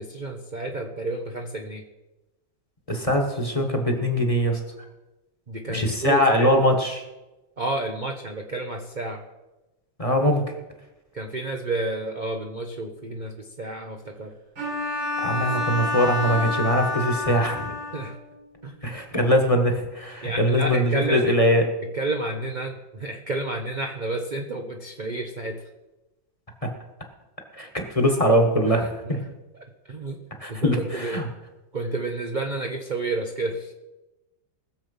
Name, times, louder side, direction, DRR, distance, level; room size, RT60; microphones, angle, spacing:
voice 1, 0.0-1.8 5.5-6.5 7.6-9.2 11.1-14.3 17.9-18.2 18.6-19.0 20.2-21.4 21.9-25.6 28.8-29.1 29.9-30.2 30.5-31.3 31.7-33.7, right 2 dB, 35° right, 3 dB, 0.8 m, -30 dB
voice 2, 2.9-4.6 5.7-7.0 10.0-10.5 15.2-17.7 18.8-21.6 26.6-26.7 27.5-29.2 30.4-31.3, equal, 20° left, 3 dB, 1.5 m, -22 dB
Bowed string instrument, 14.6-18.3, left 3 dB, 85° right, 6.9 m, -28 dB
19.5 x 7.3 x 5.5 m, 1.1 s
omnidirectional pair, 1.9 m